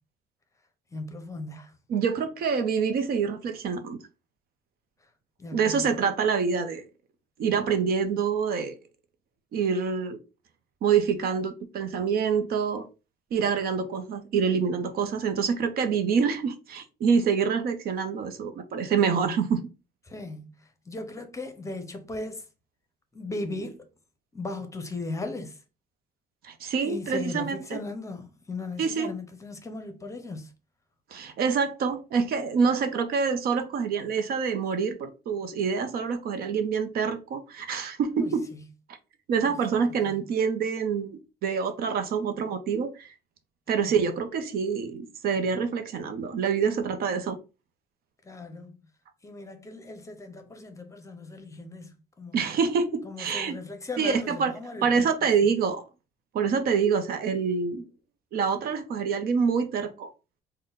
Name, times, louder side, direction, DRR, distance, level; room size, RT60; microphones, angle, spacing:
voice 1, 0.9-1.7 5.4-5.9 20.1-20.5 20.9-22.4 23.1-23.9 24.3-25.6 26.8-30.5 38.2-38.6 39.4-39.6 40.1-40.2 43.7-43.9 48.2-48.8 49.2-51.9 52.2-52.4 53.0-55.1, left 2 dB, 20° left, 0.7 m, -37 dB
voice 2, 1.9-4.0 5.5-6.8 7.4-8.8 9.5-10.2 10.8-12.9 13.3-19.6 26.4-27.8 28.8-29.1 31.1-38.5 39.3-43.1 43.7-47.4 52.3-53.6 54.0-54.5 54.8-55.8 56.3-57.8 58.3-60.1, right 6 dB, 65° right, 0.7 m, -26 dB
3.7 x 2.2 x 3.8 m
cardioid pair, 110°, 17 cm